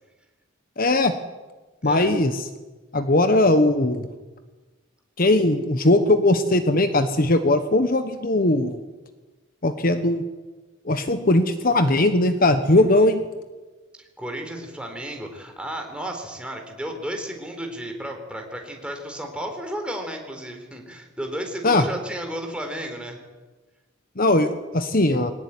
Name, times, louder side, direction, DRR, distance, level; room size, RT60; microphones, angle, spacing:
voice 1, 0.8-1.1 1.8-2.5 2.9-4.1 5.2-8.8 9.6-10.2 10.8-13.2 21.6-21.8 24.2-25.3, left 2 dB, 45° left, 9 dB, 1.3 m, -19 dB
voice 2, 12.7-13.2 14.0-23.2, equal, 5° right, 3 dB, 4.1 m, -33 dB
23.0 x 18.5 x 9.8 m, 1.2 s
head